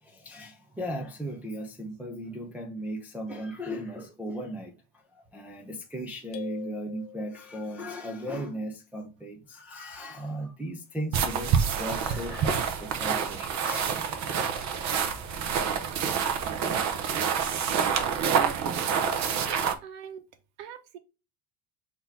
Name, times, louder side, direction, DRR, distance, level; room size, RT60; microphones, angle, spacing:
voice 1, 0.0-4.7 5.1-14.8, equal, 5° right, 0.3 m, -37 dB
sound 1, 6.3-7.9, left 14 dB, 70° left, 0.7 m, -42 dB
sound 2, 11.1-19.7, right 7 dB, 40° right, 0.6 m, -27 dB
voice 2, 18.3-18.8 19.8-20.2 20.6-21.0, right 8 dB, 85° right, 1.0 m, -42 dB
3.8 x 2.8 x 4.5 m
cardioid pair, 155°, 46 cm